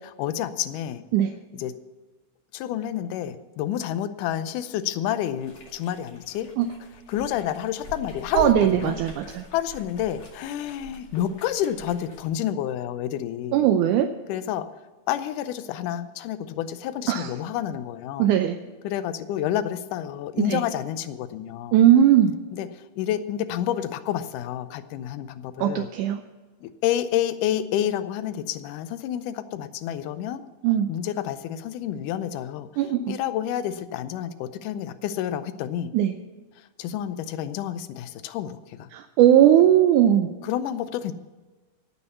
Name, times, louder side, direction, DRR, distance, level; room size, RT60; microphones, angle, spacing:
voice 1, 0.0-1.0 1.5-1.8 2.5-6.5 7.1-9.0 9.2-13.7 14.3-14.7 15.1-18.3 18.8-21.8 22.5-25.9 26.6-30.4 30.9-32.7 33.1-35.9 36.8-38.9 40.4-41.1, left 11 dB, 85° left, 12 dB, 2.2 m, -29 dB
sound 1, 5.4-12.3, equal, 45° left, 2.9 m, -43 dB
voice 2, 8.4-9.4 13.5-14.1 17.1-17.3 18.2-18.5 20.5-20.6 21.7-22.3 25.6-26.2 30.6-30.9 32.8-33.2 35.9-36.1 38.9-40.3, right 11 dB, 80° right, 6 dB, 2.1 m, -19 dB
16.5 x 6.5 x 6.9 m, 1.3 s
omnidirectional pair, 3.7 m